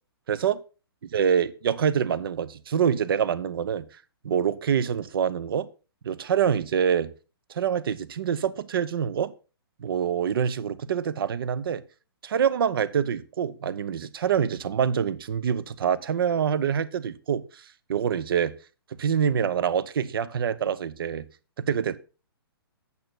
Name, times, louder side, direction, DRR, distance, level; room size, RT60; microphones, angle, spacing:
voice 1, 0.3-0.6 1.1-3.8 4.2-5.7 6.0-7.1 7.5-9.3 9.8-11.8 12.2-17.6 17.9-18.5 19.0-21.2 21.6-22.0, right 8 dB, 60° right, 0.7 m, -25 dB
8.5 x 6.8 x 4.1 m
hypercardioid pair, 130°, 13 cm